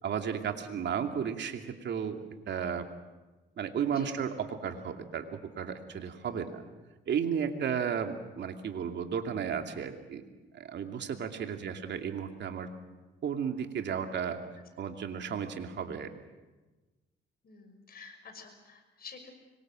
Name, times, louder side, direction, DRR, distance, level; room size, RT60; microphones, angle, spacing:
voice 1, 0.0-2.2 2.5-2.9 3.6-6.6 7.1-10.2 10.5-12.7 13.2-14.4 14.8-16.1, right 7 dB, 65° right, 5 dB, 2.7 m, -34 dB
voice 2, 3.8-4.2 6.3-6.5 11.4-11.7 17.4-19.3, left 5 dB, 50° left, 6 dB, 5.9 m, -50 dB
25.5 x 23.5 x 7.7 m, 1.2 s
cardioid pair, 90°, 20 cm